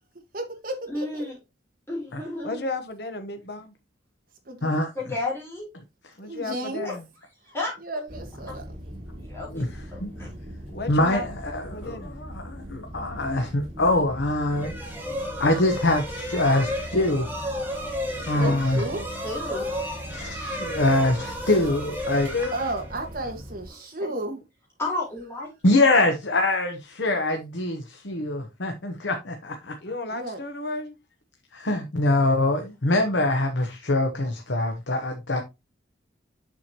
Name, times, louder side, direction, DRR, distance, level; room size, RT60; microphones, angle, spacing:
voice 1, 0.3-1.3 4.5-4.8 6.2-6.9 7.8-8.7 18.3-19.0 22.5-24.4 30.1-30.4, right 2 dB, 50° right, 1.7 m, -33 dB
voice 2, 0.9-1.3 1.9-2.6 4.9-5.7 6.8-6.9 7.5-7.8 8.5-8.6 9.2-9.7 9.9-10.3 11.7-11.9 18.4-18.5 19.2-19.7 24.0-24.1 24.8-25.5 32.1-32.3, left 2 dB, 15° left, 4.3 m, -32 dB
voice 3, 2.4-3.7 6.2-7.0 10.7-11.2 11.6-12.1 18.2-18.6 22.3-22.6 29.8-30.9, left 3 dB, 55° left, 1.0 m, -33 dB
sound 1, 8.1-23.7, equal, 30° right, 3.8 m, -40 dB
voice 4, 10.9-14.9 15.4-17.3 18.3-18.8 20.1-22.3 25.6-29.7 31.5-35.4, left 2 dB, 80° left, 1.0 m, -24 dB
sound 2, 14.5-23.3, equal, 10° right, 1.8 m, -33 dB
7.1 x 6.2 x 2.9 m
head